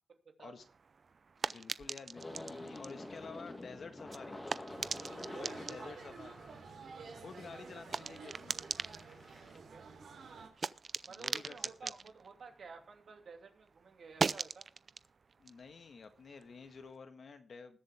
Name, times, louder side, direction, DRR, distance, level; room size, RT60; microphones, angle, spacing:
voice 1, 0.2-0.6 5.3-5.9 9.5-9.9 11.1-14.7, right 5 dB, 65° right, 4 dB, 2.7 m, -52 dB
sound 1, 0.6-13.4 13.7-16.9, right 5 dB, 50° right, 0.5 m, -42 dB
voice 2, 1.4-4.4 5.2-6.4 7.2-8.7 11.1-11.9 15.4-17.8, left 5 dB, 60° left, 8 dB, 1.7 m, -51 dB
sound 2, 2.2-9.6, left 1 dB, 20° left, 2.3 m, -48 dB
sound 3, 4.7-10.5, right 4 dB, 85° right, 3.7 m, -51 dB
20.5 x 7.7 x 3.7 m, 0.42 s
wide cardioid pair, 115°, 0 cm